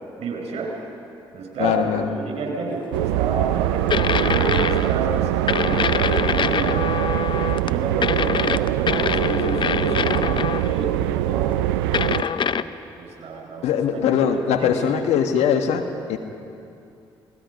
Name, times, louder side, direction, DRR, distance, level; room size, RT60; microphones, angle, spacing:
voice 1, 0.1-0.7 1.3-6.9 7.6-11.6 12.2-15.1, right 3 dB, 60° right, 1 dB, 5.7 m, -30 dB
voice 2, 1.6-2.2 13.6-16.2, left 8 dB, 70° left, 5 dB, 1.6 m, -21 dB
sound 1, 2.9-12.2, right 14 dB, 85° right, 0.4 m, -23 dB
sound 2, 3.9-5.0 5.5-7.7 8.0-10.8 11.9-12.6, left 7 dB, 45° left, 0.7 m, -24 dB
28.0 x 19.5 x 5.4 m, 2.6 s
hypercardioid pair, 45°, 12 cm